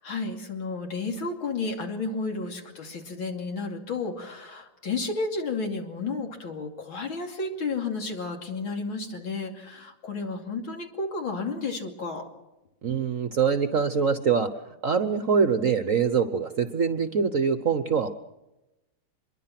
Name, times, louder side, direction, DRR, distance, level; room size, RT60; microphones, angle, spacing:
voice 1, 0.0-12.3, left 3 dB, 75° left, 3 dB, 3.5 m, -32 dB
voice 2, 12.8-18.1, right 6 dB, 50° right, 10 dB, 1.2 m, -24 dB
25.5 x 22.5 x 6.0 m, 0.97 s
omnidirectional pair, 2.2 m